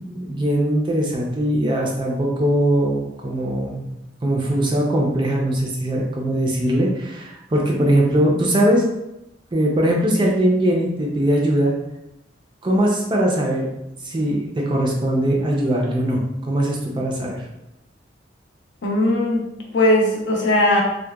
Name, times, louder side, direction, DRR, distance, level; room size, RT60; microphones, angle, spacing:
voice 1, 0.0-3.9 4.2-8.8 9.5-11.7 12.6-13.7 14.0-17.4, right 1 dB, 25° right, -2 dB, 0.4 m, -20 dB
voice 2, 18.8-20.8, left 1 dB, 70° left, -1 dB, 0.5 m, -19 dB
2.7 x 2.1 x 2.2 m, 0.87 s
head